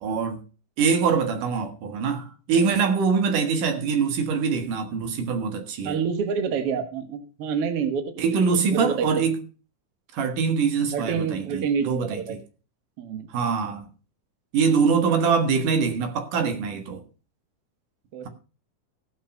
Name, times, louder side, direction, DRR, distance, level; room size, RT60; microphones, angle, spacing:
voice 1, 0.0-0.4 0.8-6.0 8.2-9.4 10.1-12.4 13.3-13.9 14.5-17.0, right 5 dB, 85° right, 3.2 m, -24 dB
voice 2, 5.8-9.1 10.9-12.4 13.0-13.3 18.1-18.3, right 6 dB, 55° right, 2.1 m, -28 dB
17.0 x 6.1 x 5.4 m
omnidirectional pair, 3.6 m